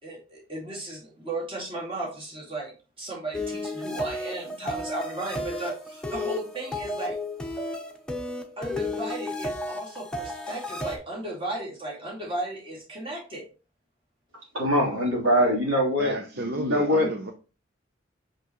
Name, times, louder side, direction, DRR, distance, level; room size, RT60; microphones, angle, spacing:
voice 1, 0.0-7.2 8.6-13.4, right 2 dB, 25° right, -3 dB, 2.5 m, -35 dB
sound 1, 3.3-11.0, left 2 dB, 5° left, 0.9 m, -33 dB
voice 2, 14.5-17.1, equal, 80° right, -2 dB, 3.4 m, -23 dB
voice 3, 16.0-17.3, right 2 dB, 55° right, 6 dB, 0.7 m, -32 dB
5.9 x 5.9 x 3.0 m, 0.33 s
head